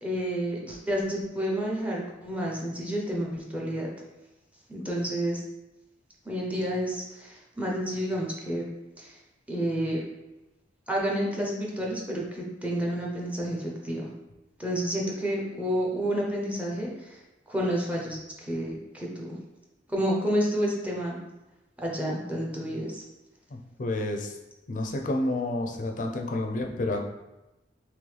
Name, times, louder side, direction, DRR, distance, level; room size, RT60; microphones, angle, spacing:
voice 1, 0.0-3.9 4.7-5.4 6.2-8.6 9.0-9.2 9.5-10.0 10.9-14.1 14.6-17.2 17.5-19.4 19.9-21.2 21.8-23.0, equal, 10° right, -3 dB, 0.7 m, -30 dB
voice 2, 23.5-24.4 24.7-27.0, left 2 dB, 45° left, 2 dB, 0.5 m, -30 dB
3.8 x 3.1 x 3.3 m, 0.98 s
head